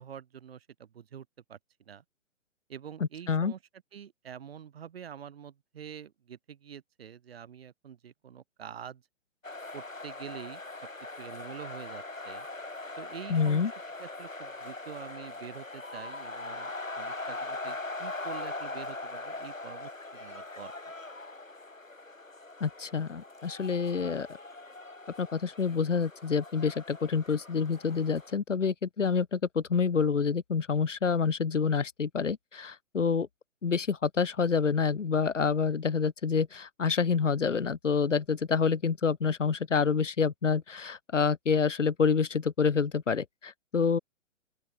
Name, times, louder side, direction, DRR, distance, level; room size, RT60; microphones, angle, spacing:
voice 1, 0.0-1.6 1.9-2.0 2.7-3.6 3.9-9.0 9.7-10.6 11.2-12.5 13.0-13.6 14.0-20.7, right 8 dB, 50° right, 7.3 m, -46 dB
sound 1, 9.4-28.3, left 2 dB, 90° left, 2.8 m, -41 dB
voice 2, 13.3-13.7 22.6-24.3 25.2-33.3 33.6-44.0, left 5 dB, 70° left, 1.4 m, -27 dB
open air
figure-of-eight pair, 130°, 38 cm